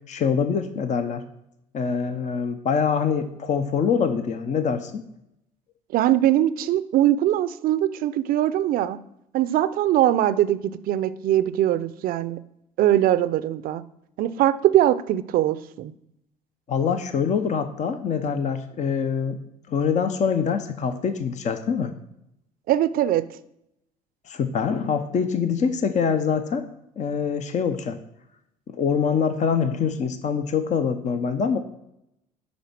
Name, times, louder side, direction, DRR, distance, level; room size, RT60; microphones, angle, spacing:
voice 1, 0.1-1.2 1.7-5.0 16.7-19.4 19.7-21.9 24.3-26.7 27.0-28.0 28.7-31.6, left 6 dB, 40° left, 9 dB, 0.8 m, -24 dB
voice 2, 5.9-9.0 9.3-12.4 12.8-13.8 14.2-15.9 22.7-23.2, right 12 dB, 55° right, 15 dB, 0.6 m, -21 dB
10.5 x 4.3 x 6.0 m, 0.80 s
hypercardioid pair, 65°, 18 cm